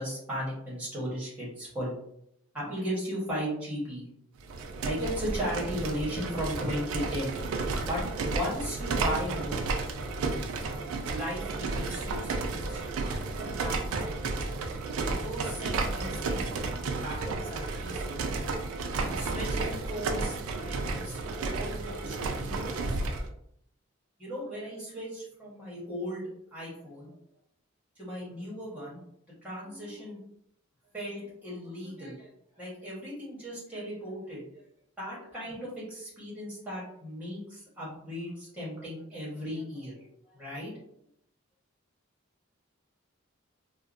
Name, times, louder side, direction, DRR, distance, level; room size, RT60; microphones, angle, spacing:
voice 1, 0.0-1.9 2.5-4.1 4.8-7.3 7.8-9.7 11.1-13.8 15.0-16.7 17.0-18.3 19.0-20.4 20.7-23.1 24.2-27.2 28.0-29.0 29.4-30.2 30.9-32.3 32.6-34.5 35.0-40.7, equal, 10° right, -7 dB, 1.1 m, -37 dB
sound 1, 4.4-23.3, right 3 dB, 85° right, 0.4 m, -32 dB
2.8 x 2.2 x 2.5 m, 0.73 s
head